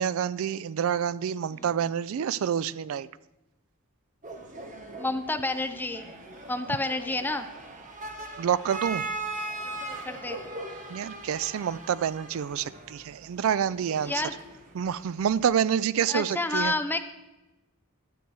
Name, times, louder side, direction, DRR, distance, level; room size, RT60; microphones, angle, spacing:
voice 1, 0.0-3.1 8.4-9.0 10.9-14.1 14.7-16.7, right 8 dB, 65° right, 19 dB, 0.3 m, -27 dB
sound 1, 4.2-15.4, right 2 dB, 35° right, 1.2 m, -40 dB
voice 2, 5.0-6.1 6.5-7.5 10.1-10.4 14.0-14.3 16.1-17.0, left 2 dB, 10° left, 8 dB, 0.5 m, -29 dB
12.5 x 8.0 x 4.7 m, 1.0 s
head